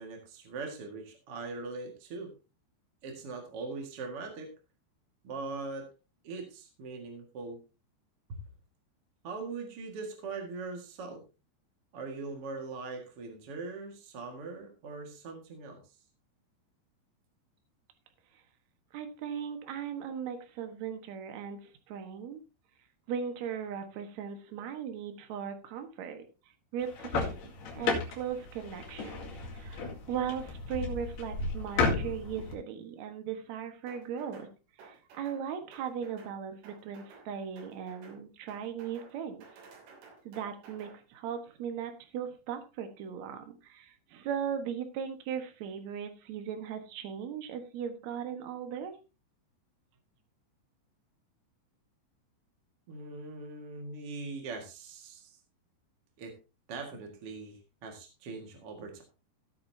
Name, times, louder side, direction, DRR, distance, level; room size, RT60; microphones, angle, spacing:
voice 1, 0.0-2.3 3.0-4.5 5.2-5.9 6.2-7.6 8.3-8.4 9.2-11.2 11.9-15.8 52.9-55.4 56.2-56.3 56.7-59.0, right 3 dB, 50° right, 2 dB, 1.8 m, -41 dB
voice 2, 18.9-22.4 23.1-26.2 26.7-34.5 34.8-39.4 40.2-48.9, right 8 dB, 70° right, 6 dB, 1.7 m, -38 dB
sound 1, 26.8-32.5, left 4 dB, 60° left, 3.9 m, -34 dB
sound 2, 33.9-34.5 34.8-35.4 35.7-36.4 36.6-37.3 37.6-38.2 38.5-39.1 39.4-41.0, right 4 dB, 85° right, 5.4 m, -54 dB
16.5 x 8.6 x 2.8 m, 0.30 s
omnidirectional pair, 5.4 m